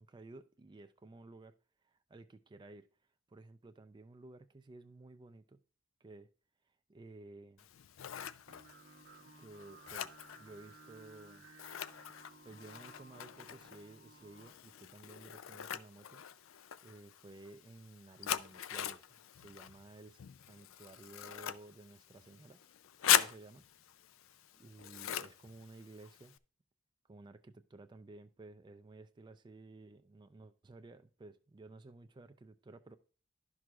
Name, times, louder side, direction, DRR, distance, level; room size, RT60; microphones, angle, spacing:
voice 1, 0.0-1.5 1.8-2.9 3.3-5.6 6.0-6.3 6.6-7.7 9.4-11.4 12.4-16.2 16.8-22.6 23.1-23.6 24.5-26.4 27.1-33.0, right 2 dB, 20° right, 0.4 m, -55 dB
Scissors, 7.6-26.4, left 11 dB, 80° left, 0.4 m, -40 dB
Singing, 8.5-14.5, right 3 dB, 65° right, 1.0 m, -58 dB
11.5 x 6.1 x 2.4 m
head